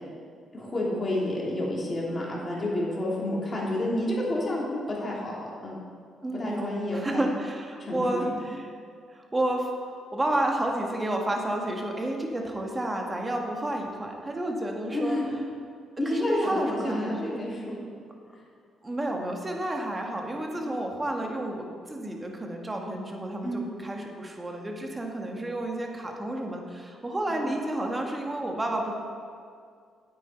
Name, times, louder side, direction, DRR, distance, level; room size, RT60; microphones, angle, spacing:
voice 1, 0.5-5.8 6.3-7.3 7.8-8.4 14.9-15.2 16.0-17.8 20.5-20.7 23.4-23.6 27.3-27.5, left 1 dB, 35° left, -4 dB, 2.8 m, -30 dB
voice 2, 6.2-8.7 9.1-15.2 16.0-17.4 18.8-28.9, right 1 dB, 20° right, 1 dB, 1.5 m, -31 dB
9.1 x 8.6 x 4.4 m, 2.2 s
cardioid pair, 90°, 0 cm